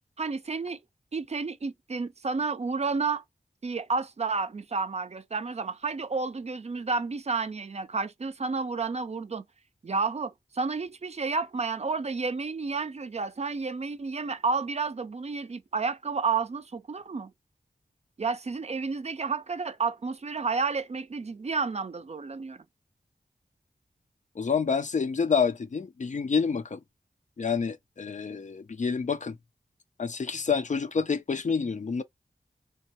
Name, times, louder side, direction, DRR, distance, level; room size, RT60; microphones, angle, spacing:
voice 1, 0.2-0.8 1.1-3.2 3.6-9.4 9.8-17.3 18.2-22.6, right 4 dB, 45° right, 0.4 m, -31 dB
voice 2, 24.4-26.8 27.4-29.4 30.0-32.0, left 5 dB, 50° left, 0.4 m, -28 dB
3.3 x 2.1 x 2.8 m
cardioid pair, 50°, 16 cm